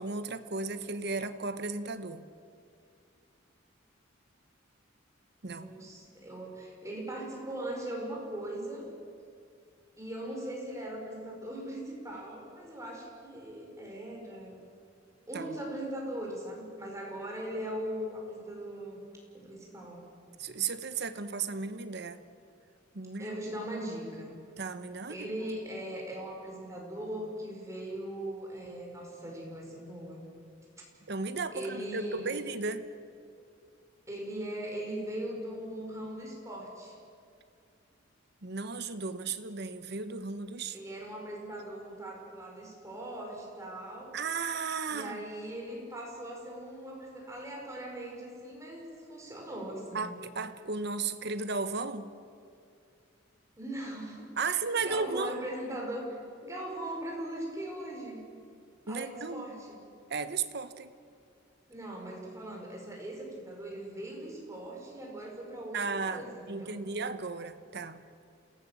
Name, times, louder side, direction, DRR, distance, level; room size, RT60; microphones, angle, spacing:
voice 1, 0.0-2.3 5.4-5.7 15.3-15.6 20.4-22.2 22.9-23.4 24.6-25.3 31.1-32.8 38.4-40.8 44.1-45.2 49.9-52.1 54.4-55.3 58.9-59.5 60.1-60.9 65.7-68.0, right 4 dB, 55° right, 11 dB, 1.1 m, -35 dB
voice 2, 5.5-8.9 10.0-14.6 15.3-19.0 19.3-20.0 23.2-24.3 25.1-30.2 31.5-32.4 34.1-37.0 40.7-44.2 44.9-50.1 53.6-58.2 58.9-59.8 61.7-66.8, right 1 dB, 15° right, -1 dB, 5.0 m, -40 dB
28.0 x 17.5 x 7.4 m, 2.4 s
head